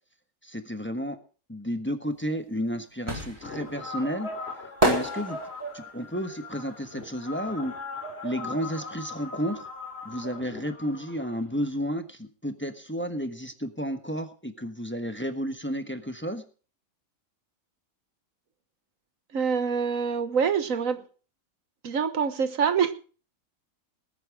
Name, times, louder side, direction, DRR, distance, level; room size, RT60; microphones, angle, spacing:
voice 1, 0.4-1.2 1.5-4.3 4.8-5.4 5.7-7.7 8.2-9.6 10.0-16.4, equal, 10° left, 8 dB, 1.2 m, -32 dB
sound 1, 2.2-8.0 8.3-9.9 10.2-10.3, right 1 dB, 25° right, 4.6 m, -30 dB
sound 2, 3.4-11.9, left 2 dB, 45° left, 3.0 m, -39 dB
voice 2, 19.3-21.0 21.8-22.9, right 6 dB, 70° right, 10 dB, 1.6 m, -25 dB
20.0 x 9.0 x 4.8 m, 0.38 s
omnidirectional pair, 1.5 m